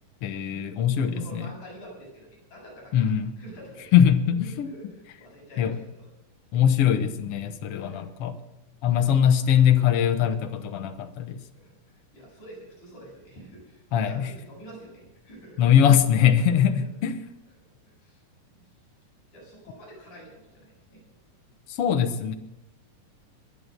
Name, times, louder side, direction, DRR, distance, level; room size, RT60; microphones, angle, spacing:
voice 1, 0.2-1.5 2.9-3.3 3.9-4.7 5.6-5.7 6.5-8.3 8.8-11.4 13.9-14.3 15.6-17.2 21.7-22.3, left 9 dB, 70° left, 8 dB, 1.4 m, -21 dB
voice 2, 1.0-4.0 4.6-6.1 7.6-8.0 11.5-15.7 16.8-16.9 17.8-18.2 18.5-18.6 19.3-21.0, right 1 dB, 55° left, -3 dB, 8.5 m, -47 dB
23.5 x 8.7 x 6.7 m, 0.89 s
omnidirectional pair, 4.1 m